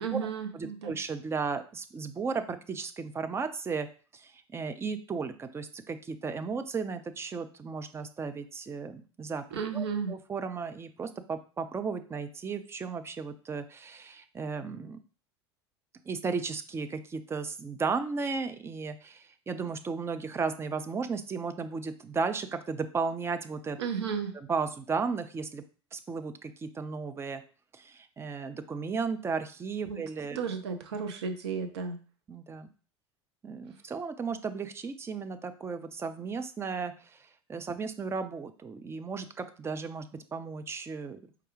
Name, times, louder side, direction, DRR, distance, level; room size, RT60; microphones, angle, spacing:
voice 1, 0.0-0.9 9.5-10.2 23.8-24.4 29.9-30.0 30.3-32.0, right 6 dB, 70° right, 7 dB, 0.6 m, -33 dB
voice 2, 0.5-3.9 4.1-9.4 9.7-9.8 10.3-15.0 16.1-23.8 24.5-25.6 25.9-27.4 27.7-30.4 32.3-32.7 33.4-37.2 37.5-41.2, right 5 dB, 15° right, 9 dB, 0.4 m, -35 dB
4.5 x 2.4 x 3.1 m, 0.37 s
figure-of-eight pair, 70°, 15 cm